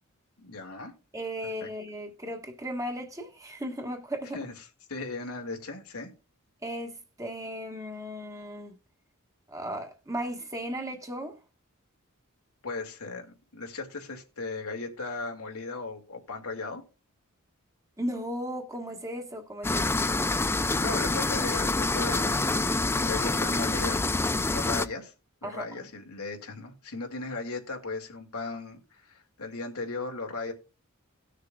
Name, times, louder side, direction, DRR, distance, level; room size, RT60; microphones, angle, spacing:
voice 1, 0.4-0.9 1.6-1.7 4.3-4.5 4.9-6.1 12.6-16.8 20.7-22.5 23.0-25.1 25.4-30.5, left 3 dB, 90° left, 2.3 m, -37 dB
voice 2, 1.1-4.4 6.6-8.7 9.5-11.4 18.0-20.0 25.4-25.6, equal, 15° right, 1.4 m, -36 dB
sound 1, 19.6-24.8, left 2 dB, 10° left, 0.4 m, -26 dB
18.5 x 6.6 x 2.3 m
head